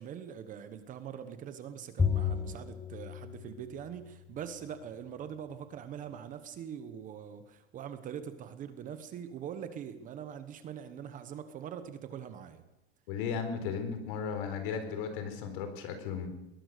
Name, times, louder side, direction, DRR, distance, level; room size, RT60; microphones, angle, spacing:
voice 1, 0.0-12.6, right 8 dB, 25° right, 10 dB, 1.2 m, -43 dB
Bowed string instrument, 2.0-4.5, left 6 dB, 5° left, 0.9 m, -33 dB
voice 2, 13.1-16.3, left 6 dB, 55° left, 8 dB, 4.2 m, -35 dB
21.0 x 19.0 x 6.7 m, 0.96 s
supercardioid pair, 170°, 32 cm